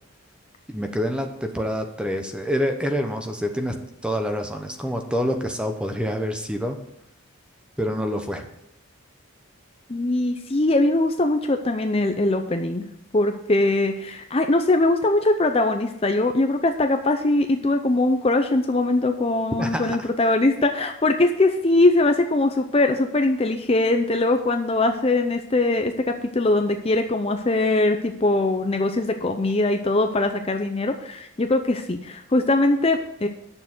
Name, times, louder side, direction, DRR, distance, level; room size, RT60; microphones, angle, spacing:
voice 1, 0.7-6.8 7.8-8.5 19.6-20.1, equal, 5° right, 5 dB, 0.9 m, -27 dB
voice 2, 9.9-12.8 13.1-33.3, left 2 dB, 25° left, 6 dB, 0.6 m, -21 dB
9.8 x 6.7 x 6.1 m, 0.83 s
head